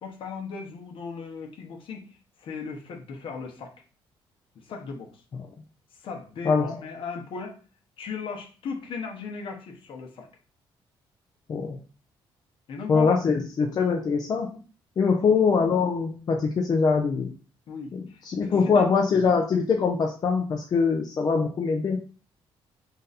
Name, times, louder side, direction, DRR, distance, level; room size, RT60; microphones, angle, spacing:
voice 1, 0.0-2.0 2.4-3.7 4.7-5.2 6.0-7.5 8.0-10.3 12.7-13.2 15.1-15.3 17.7-18.9, left 5 dB, 65° left, 2 dB, 1.0 m, -37 dB
voice 2, 12.9-14.6 15.0-17.3 17.9-22.0, left 5 dB, 45° left, 1 dB, 0.6 m, -23 dB
3.9 x 2.6 x 4.0 m, 0.37 s
cardioid pair, 115°, 10 cm